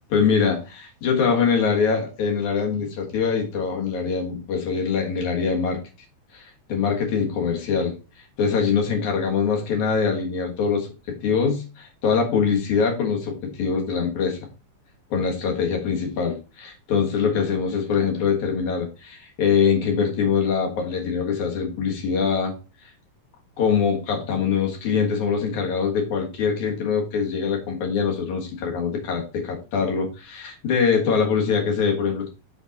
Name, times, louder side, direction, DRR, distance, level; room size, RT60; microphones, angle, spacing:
voice 1, 0.1-5.8 6.3-7.9 8.4-14.4 15.1-22.5 23.6-32.3, left 6 dB, 60° left, 1 dB, 2.7 m, -23 dB
6.5 x 5.3 x 4.0 m, 0.31 s
omnidirectional pair, 4.1 m